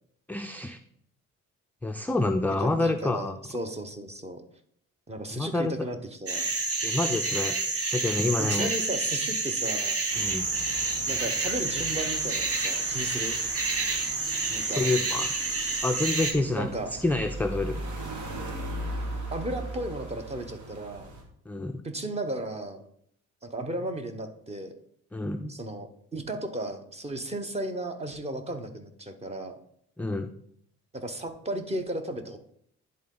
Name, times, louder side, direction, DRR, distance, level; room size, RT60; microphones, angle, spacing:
voice 1, 0.3-0.8 1.8-3.4 5.3-5.7 6.8-7.6 7.9-8.7 10.2-10.5 14.8-15.3 15.8-16.7 17.0-17.8 21.5-21.8 25.1-25.5 30.0-30.3, left 2 dB, 5° left, 6 dB, 0.3 m, -27 dB
voice 2, 2.6-4.4 5.1-6.5 8.4-10.0 11.1-13.4 14.5-14.9 16.5-16.9 19.3-21.1 21.8-22.8 23.4-24.7 25.5-29.6 30.9-32.4, right 1 dB, 20° right, 7 dB, 0.9 m, -35 dB
sound 1, 6.3-16.3, right 3 dB, 50° right, 1.3 m, -29 dB
sound 2, 10.1-21.2, right 1 dB, 75° right, 1.6 m, -39 dB
10.5 x 3.8 x 3.8 m, 0.67 s
cardioid pair, 90°, 30 cm